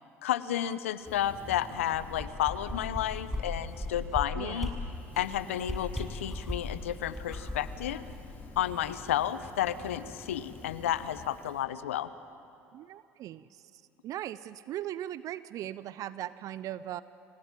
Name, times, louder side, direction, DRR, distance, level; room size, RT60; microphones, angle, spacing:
voice 1, 0.2-4.7 5.2-8.0 8.6-12.1, left 11 dB, 85° left, 14 dB, 0.9 m, -31 dB
Fire, 1.0-4.1 4.5-11.6, left 3 dB, 30° left, 6.2 m, -49 dB
sound 1, 1.9-3.0 3.3-3.4 3.7-4.2 4.6-4.7 5.1-5.3 5.6-6.7 7.1-8.7 9.1-9.2, left 1 dB, ahead, 6.5 m, -36 dB
voice 2, 4.4-4.8 12.7-13.5 14.0-17.0, right 12 dB, 55° right, 17 dB, 0.6 m, -39 dB
28.0 x 17.0 x 9.1 m, 2.8 s
hypercardioid pair, 70°, 7 cm